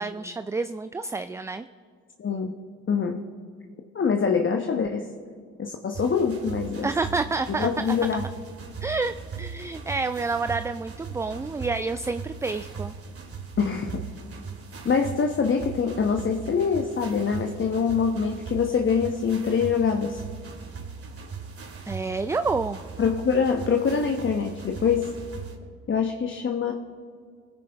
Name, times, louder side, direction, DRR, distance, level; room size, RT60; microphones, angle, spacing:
voice 1, 0.0-1.7 6.8-8.0 8.8-12.9 21.9-22.8, right 3 dB, 10° right, 11 dB, 0.3 m, -29 dB
voice 2, 2.2-2.5 2.9-3.2 3.9-5.1 5.6-6.9 7.5-8.2 13.6-14.1 14.8-20.2 23.0-25.1 25.9-26.7, left 6 dB, 35° left, 3 dB, 1.1 m, -24 dB
sound 1, 5.9-25.6, right 5 dB, 40° right, 2.4 m, -39 dB
22.0 x 9.5 x 3.5 m, 2.1 s
hypercardioid pair, 55°, 36 cm